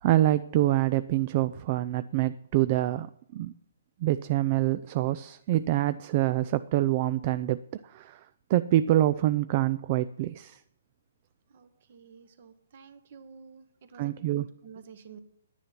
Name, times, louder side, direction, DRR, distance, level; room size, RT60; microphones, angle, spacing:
voice 1, 0.0-3.5 4.0-7.6 7.9-8.2 8.5-10.6 14.0-14.5, right 14 dB, 35° right, 14 dB, 0.4 m, -26 dB
voice 2, 11.5-15.2, right 6 dB, 50° right, 11 dB, 1.3 m, -51 dB
10.0 x 9.8 x 5.9 m, 0.71 s
hypercardioid pair, 155°, 0 cm